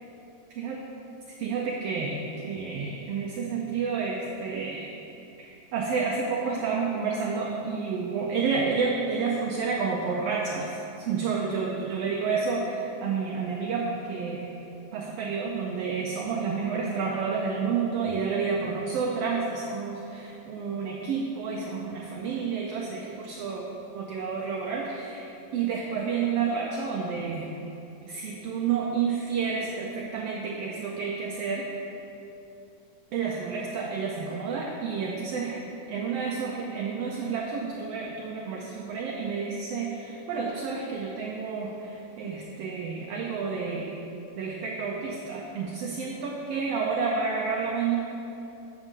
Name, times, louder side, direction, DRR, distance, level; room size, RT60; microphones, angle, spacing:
voice 1, 1.4-4.9 5.4-14.5 14.9-25.3 25.5-27.5 28.0-31.7 33.1-35.6 35.9-44.0 44.4-48.0, right 5 dB, 80° right, -2 dB, 1.4 m, -30 dB
7.8 x 7.1 x 3.7 m, 2.9 s
omnidirectional pair, 3.3 m